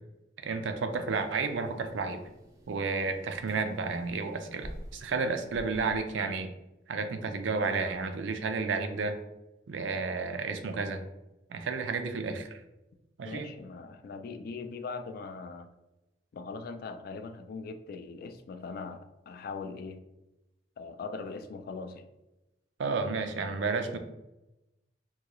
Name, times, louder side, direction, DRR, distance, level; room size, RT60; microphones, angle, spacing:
voice 1, 0.4-2.2 2.7-6.5 6.9-9.2 9.7-11.0 11.5-12.6 13.2-13.5 22.8-24.0, right 4 dB, 90° right, 7 dB, 0.4 m, -31 dB
sound 1, 0.9-6.0, equal, 20° right, 0.5 m, -49 dB
voice 2, 13.2-15.7 16.3-20.0 20.8-22.1, left 4 dB, 55° left, 8 dB, 0.3 m, -40 dB
3.7 x 2.3 x 2.9 m, 0.97 s
head